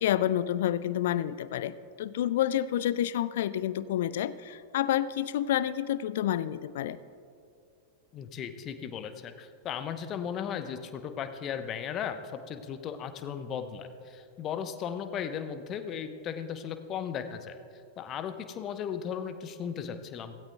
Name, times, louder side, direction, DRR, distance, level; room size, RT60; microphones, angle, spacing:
voice 1, 0.0-7.0, left 11 dB, 55° left, 17 dB, 0.3 m, -29 dB
voice 2, 8.1-17.6 18.0-20.4, left 8 dB, 30° left, 9 dB, 0.8 m, -36 dB
16.5 x 16.5 x 2.3 m, 2.4 s
figure-of-eight pair, 90°, 0 cm